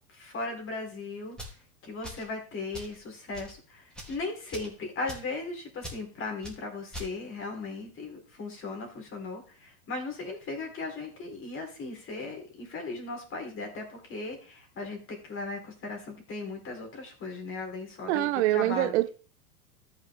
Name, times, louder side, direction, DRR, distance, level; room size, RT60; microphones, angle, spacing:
voice 1, 0.1-1.4 1.8-18.3 18.5-18.9, left 3 dB, 30° left, 4.1 m, -37 dB
sound 1, 1.3-1.6 2.0-2.3 2.7-3.0 3.3-3.5 3.9-4.2 4.5-4.7 5.1-5.3 5.8-6.0 6.4-6.6 6.9-7.1, left 1 dB, ahead, 3.1 m, -42 dB
voice 2, 18.1-19.1, right 16 dB, 50° right, 0.7 m, -25 dB
14.0 x 5.8 x 3.7 m
hypercardioid pair, 105°, 44 cm